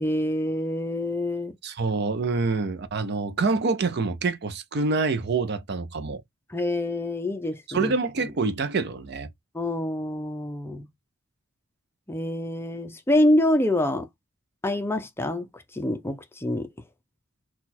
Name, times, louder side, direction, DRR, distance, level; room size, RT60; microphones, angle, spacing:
voice 1, 0.0-1.6 6.5-7.9 9.5-10.9 12.1-14.1 14.6-15.5 15.7-16.7, left 1 dB, 10° left, 0.5 m, -26 dB
voice 2, 1.6-6.2 7.7-9.3, right 4 dB, 50° right, 0.5 m, -26 dB
4.0 x 2.3 x 4.2 m
head